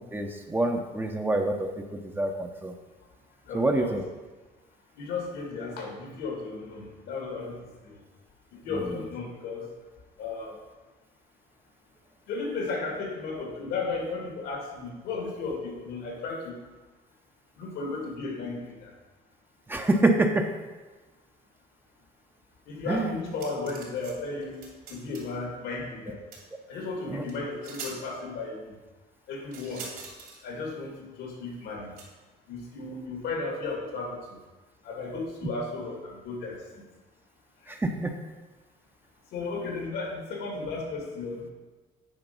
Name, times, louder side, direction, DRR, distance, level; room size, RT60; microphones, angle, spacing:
voice 1, 0.0-2.7 3.5-4.0 8.7-9.0 19.7-20.5 22.9-23.2 27.1-27.2 37.7-38.1, right 2 dB, 10° right, 4 dB, 0.8 m, -27 dB
voice 2, 3.5-4.0 5.0-8.0 8.5-9.7 10.2-10.6 12.3-16.6 17.6-18.9 22.7-24.6 24.9-26.2 26.7-28.8 29.3-29.9 30.4-32.0 32.5-34.4 34.8-36.9 37.6-37.8 39.3-41.5, left 3 dB, 85° left, 0 dB, 2.4 m, -34 dB
sound 1, 23.3-24.1 24.4-25.3 26.3-26.4 27.3-27.4 27.6-28.0 29.5-30.4 32.0-32.1, right 4 dB, 65° right, 2.9 m, -43 dB
9.0 x 5.1 x 5.4 m, 1.2 s
cardioid pair, 110°, 17 cm